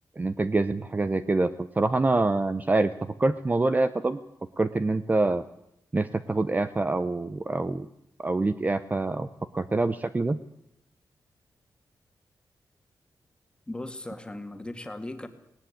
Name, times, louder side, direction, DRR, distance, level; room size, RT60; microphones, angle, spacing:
voice 1, 0.2-2.9 3.2-4.2 4.6-5.4 5.9-7.9 8.2-9.3 9.5-10.4, right 2 dB, 20° right, 11 dB, 0.8 m, -25 dB
voice 2, 13.7-15.3, left 1 dB, 15° left, 7 dB, 2.1 m, -37 dB
19.0 x 19.0 x 8.6 m, 0.78 s
wide cardioid pair, 135°, 7 cm